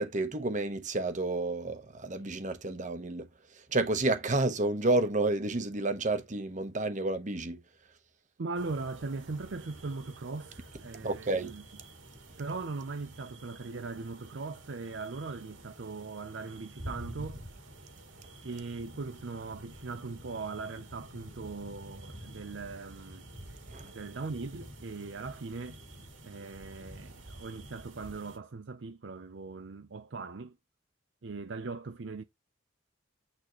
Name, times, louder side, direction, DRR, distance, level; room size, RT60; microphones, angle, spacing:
voice 1, 0.0-3.3 3.7-7.6 11.0-11.5 23.7-23.9, right 2 dB, 40° right, 1.1 m, -30 dB
voice 2, 8.4-11.6 12.4-17.4 18.4-23.3 23.9-25.8 26.2-30.6 31.2-32.2, right 3 dB, 65° right, 0.6 m, -40 dB
sound 1, 8.5-28.4, right 1 dB, 90° right, 2.7 m, -49 dB
9.0 x 4.0 x 3.1 m
head